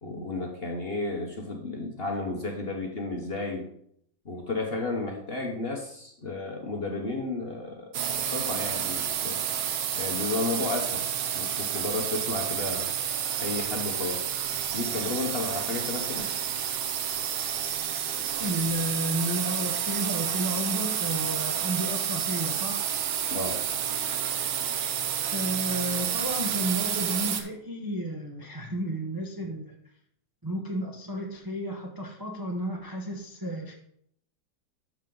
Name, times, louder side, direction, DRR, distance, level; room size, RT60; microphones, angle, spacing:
voice 1, 0.0-3.7 4.2-9.4 9.9-11.1 11.3-12.9 13.4-14.3 14.7-16.3 23.3-23.8, left 3 dB, 40° left, 1 dB, 0.9 m, -33 dB
sound 1, 7.9-27.4, right 9 dB, 85° right, 1.6 m, -30 dB
voice 2, 18.4-22.8 25.3-29.7 30.4-33.8, right 1 dB, 25° right, 0 dB, 0.4 m, -32 dB
12.0 x 4.7 x 3.9 m, 0.69 s
omnidirectional pair, 2.2 m